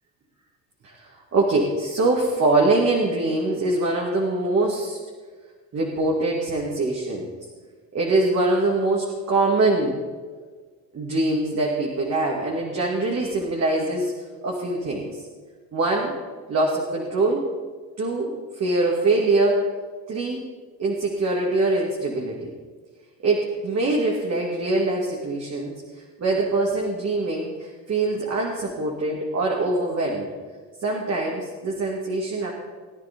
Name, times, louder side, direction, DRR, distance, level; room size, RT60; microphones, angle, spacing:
voice 1, 0.8-5.0 5.7-7.3 7.9-10.0 10.9-14.1 14.4-15.2 15.7-16.1 16.5-17.5 18.0-19.6 20.1-20.4 20.8-22.5 23.2-25.7 26.2-30.3 30.8-32.5, right 2 dB, 45° right, -2 dB, 2.6 m, -23 dB
20.5 x 9.9 x 3.8 m, 1.5 s
supercardioid pair, 80°, 37 cm